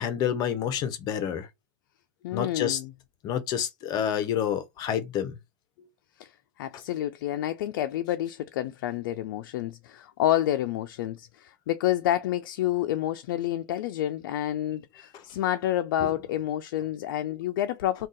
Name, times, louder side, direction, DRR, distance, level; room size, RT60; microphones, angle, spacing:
voice 1, 0.0-1.5 2.3-2.8 3.2-5.3, left 9 dB, 40° left, 0.7 m, -28 dB
voice 2, 2.2-2.9 6.2-6.3 6.6-18.1, left 13 dB, 80° left, 0.4 m, -29 dB
2.6 x 2.3 x 3.7 m
supercardioid pair, 145°, 11 cm